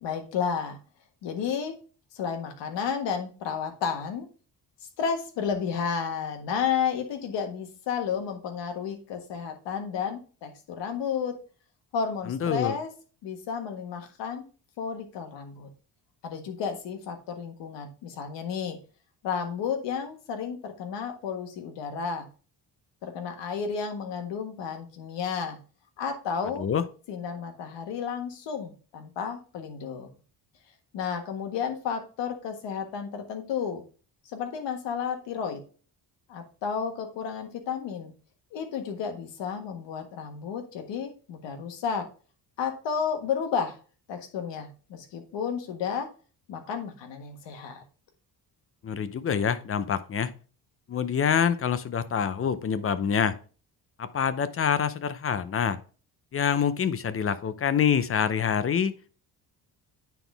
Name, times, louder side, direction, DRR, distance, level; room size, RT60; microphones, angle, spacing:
voice 1, 0.0-0.8 1.2-1.7 2.1-4.3 5.0-11.4 11.9-12.9 13.2-14.5 14.8-15.7 16.2-18.8 19.2-22.3 23.0-25.6 26.0-26.7 27.1-30.1 30.9-33.8 34.3-35.6 36.3-38.1 38.5-42.1 42.6-43.8 44.1-46.1 46.5-47.8, left 6 dB, 85° left, 1.6 m, -32 dB
voice 2, 12.3-12.8 26.6-26.8 48.8-50.3 50.9-53.4 54.0-55.8 56.3-59.0, left 7 dB, 35° left, 0.6 m, -26 dB
9.1 x 4.0 x 3.4 m
cardioid pair, 125°, 42 cm